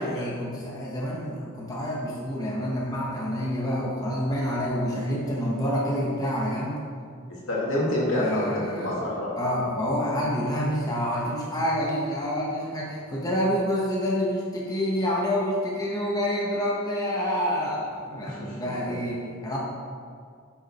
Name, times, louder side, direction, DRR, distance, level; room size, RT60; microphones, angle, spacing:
voice 1, 0.0-6.8 8.1-8.9 9.4-19.6, equal, 20° left, -4 dB, 1.2 m, -28 dB
voice 2, 7.5-9.3 18.2-18.6, left 1 dB, 75° left, -5 dB, 2.6 m, -27 dB
9.7 x 6.7 x 4.3 m, 2.2 s
head